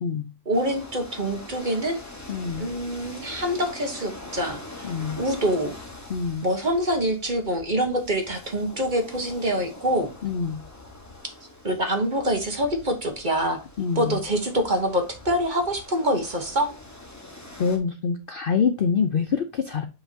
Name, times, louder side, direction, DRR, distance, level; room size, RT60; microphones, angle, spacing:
sound 1, 0.5-17.8, left 2 dB, 15° left, 1.1 m, -43 dB
voice 1, 0.5-2.0 2.6-4.9 5.2-5.7 6.4-10.1 11.6-13.6 13.9-16.7, equal, 35° right, 1.3 m, -25 dB
voice 2, 2.3-2.7 4.8-5.2 6.1-6.5 10.2-10.6 13.8-14.2 17.6-19.9, left 6 dB, 55° left, 0.6 m, -25 dB
7.7 x 5.6 x 2.8 m
omnidirectional pair, 1.5 m